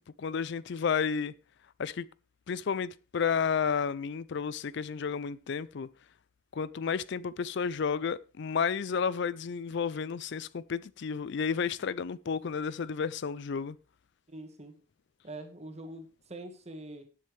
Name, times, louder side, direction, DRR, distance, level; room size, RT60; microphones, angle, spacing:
voice 1, 0.2-1.3 1.8-2.1 2.5-5.9 6.5-13.8, left 6 dB, 60° left, 0.4 m, -31 dB
voice 2, 14.3-14.8 15.2-17.1, right 1 dB, 35° right, 2.1 m, -44 dB
18.0 x 7.4 x 3.3 m
head